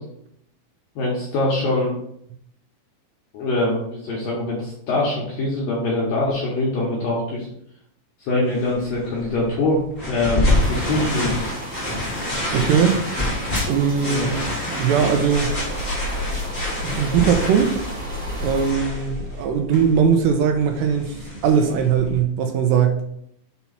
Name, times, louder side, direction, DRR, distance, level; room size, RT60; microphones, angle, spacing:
voice 1, 1.0-1.9 3.3-7.5 8.2-9.8 10.1-11.4 14.0-14.4, left 2 dB, 70° left, -5 dB, 2.2 m, -23 dB
sound 1, 8.5-22.2, left 1 dB, 45° left, 0.6 m, -27 dB
sound 2, 10.5-18.7, right 1 dB, 35° right, 1.6 m, -35 dB
voice 2, 12.5-13.0 13.7-14.4 14.7-15.6 16.8-17.8 18.4-21.2 21.4-23.0, right 7 dB, 85° right, 4 dB, 2.5 m, -20 dB
sound 3, 14.9-21.7, left 1 dB, 65° right, 3.4 m, -33 dB
6.9 x 3.0 x 5.5 m, 0.72 s
omnidirectional pair, 5.4 m